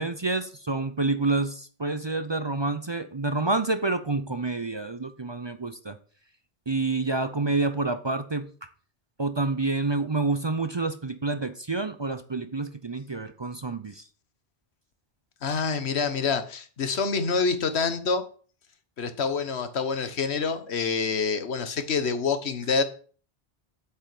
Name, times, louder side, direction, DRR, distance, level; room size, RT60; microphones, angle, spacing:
voice 1, 0.0-6.0 6.7-8.7 9.2-14.0, right 3 dB, 30° right, 10 dB, 0.6 m, -28 dB
voice 2, 15.4-18.2 19.0-22.8, left 5 dB, 90° left, 10 dB, 1.4 m, -27 dB
8.3 x 5.7 x 7.6 m, 0.42 s
omnidirectional pair, 1.1 m